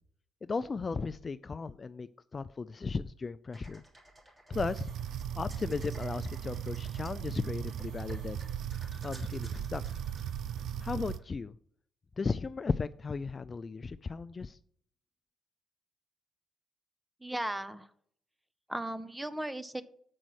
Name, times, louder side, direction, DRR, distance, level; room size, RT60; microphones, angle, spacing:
voice 1, 0.4-3.8 4.5-4.9 5.4-8.5 9.0-9.8 10.8-11.5 12.2-14.6, left 4 dB, 35° left, 14 dB, 0.3 m, -35 dB
sound 1, 3.5-11.2, right 1 dB, 25° right, 3.3 m, -55 dB
sound 2, 4.5-11.2, right 10 dB, 75° right, 0.4 m, -37 dB
voice 2, 17.2-17.9 18.7-19.8, right 1 dB, 10° right, 14 dB, 0.7 m, -36 dB
7.6 x 5.2 x 6.3 m, 0.63 s
cardioid pair, 90°, 0 cm